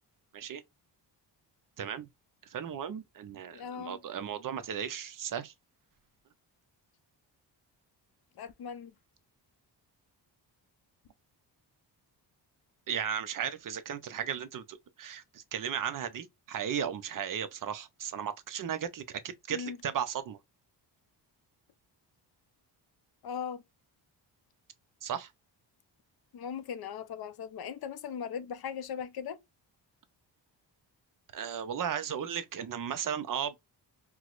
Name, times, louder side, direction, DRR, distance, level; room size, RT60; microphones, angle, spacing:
voice 1, 1.8-2.1 2.5-5.5 12.9-20.4 25.0-25.3 31.3-33.6, right 8 dB, 50° right, 0.6 m, -35 dB
voice 2, 3.5-4.0 8.4-8.9 19.5-19.8 23.2-23.6 26.3-29.4, left 7 dB, 60° left, 0.5 m, -39 dB
4.5 x 2.0 x 2.3 m
wide cardioid pair, 140°, 43 cm